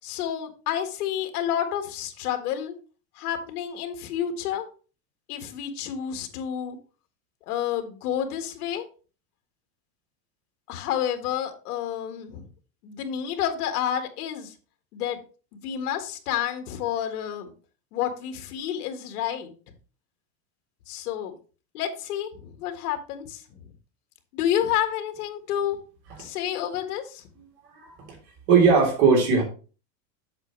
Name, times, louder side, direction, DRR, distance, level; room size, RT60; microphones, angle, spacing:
voice 1, 0.0-2.7 3.1-4.7 5.3-6.8 7.5-8.8 10.7-12.5 12.8-14.5 14.9-15.2 15.5-17.5 17.9-19.5 20.9-21.3 21.7-23.7 24.3-25.8 26.2-27.2, left 10 dB, 65° left, 7 dB, 1.7 m, -29 dB
voice 2, 28.5-29.4, right 5 dB, 45° right, 0 dB, 3.5 m, -18 dB
8.1 x 6.9 x 3.2 m, 0.36 s
supercardioid pair, 175°, 49 cm